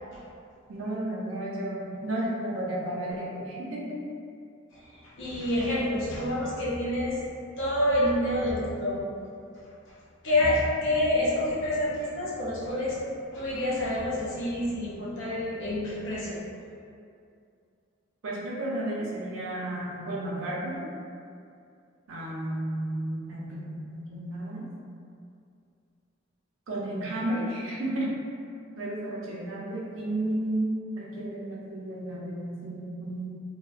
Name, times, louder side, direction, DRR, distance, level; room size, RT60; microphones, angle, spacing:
voice 1, 0.7-4.0 18.2-20.8 22.1-24.7 26.7-28.1 28.8-33.4, right 1 dB, 90° right, -6 dB, 0.5 m, -32 dB
voice 2, 4.7-7.2 7.6-9.0 10.2-13.0 13.3-16.4, left 1 dB, 65° left, -6 dB, 0.5 m, -27 dB
2.7 x 2.0 x 2.3 m, 2.4 s
head